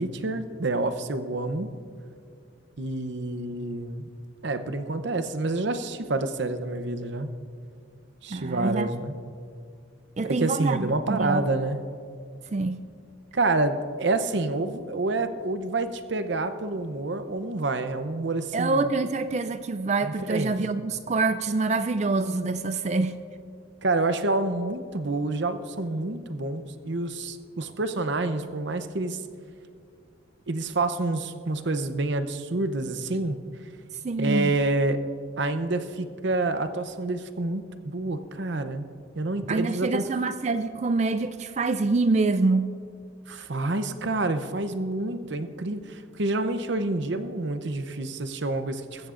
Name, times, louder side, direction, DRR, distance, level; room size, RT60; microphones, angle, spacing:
voice 1, 0.0-1.7 2.8-4.1 4.4-7.3 8.2-9.2 10.2-11.8 13.3-18.9 20.0-20.6 23.8-29.2 30.5-33.4 34.2-35.0 35.4-38.8 39.1-40.0 43.3-49.1, right 2 dB, 60° right, 9 dB, 0.7 m, -28 dB
voice 2, 8.3-8.9 10.2-11.4 12.5-12.8 18.5-23.2 34.0-34.5 39.5-42.7, right 3 dB, 35° right, 10 dB, 0.4 m, -26 dB
21.0 x 16.0 x 2.6 m, 2.3 s
head